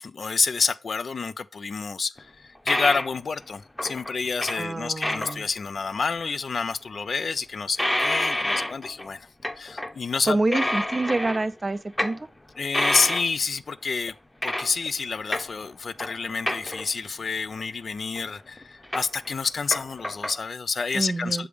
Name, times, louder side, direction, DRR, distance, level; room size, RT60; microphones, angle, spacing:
voice 1, 0.0-9.3 9.6-10.7 12.6-14.1 14.4-21.5, left 5 dB, 65° left, 0.3 m, -28 dB
sound 1, 2.2-2.3 2.7-3.1 3.8-4.6 5.0-5.4 6.0-6.1 7.8-9.1 9.4-10.0 10.3-11.5 12.0-12.2 12.7-13.3 14.4-14.8 15.2-15.6 16.0-16.2 16.5-17.1 18.2-18.3 18.6-20.4, left 1 dB, 20° left, 0.8 m, -28 dB
voice 2, 4.6-5.4 10.3-12.3 20.9-21.5, right 2 dB, 35° right, 0.4 m, -27 dB
6.8 x 3.5 x 4.9 m
cardioid pair, 45°, 0 cm